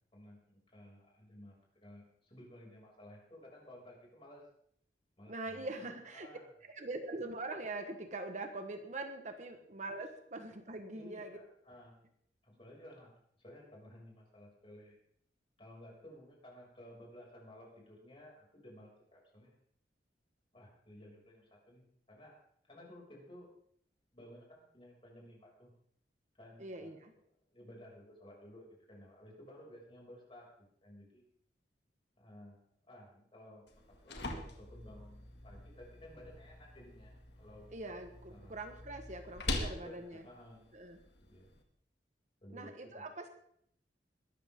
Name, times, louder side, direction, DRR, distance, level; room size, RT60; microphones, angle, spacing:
voice 1, 0.1-4.4 5.2-6.4 10.9-12.0 12.4-13.1 13.4-15.0 15.6-19.5 20.5-22.4 22.6-23.5 24.1-25.7 26.4-26.9 27.5-31.2 32.2-32.6 32.9-37.1 37.4-37.7 38.3-38.6 39.5-40.7 41.2-41.5 42.4-43.0, left 1 dB, 30° left, -2 dB, 6.3 m, -55 dB
voice 2, 5.3-6.3 6.7-11.4 26.6-27.1 37.7-40.3 40.7-41.0 42.5-43.3, right 2 dB, 45° right, 6 dB, 1.3 m, -43 dB
sound 1, 33.7-41.6, left 2 dB, 75° left, 2.2 m, -44 dB
21.5 x 13.0 x 3.7 m, 0.68 s
head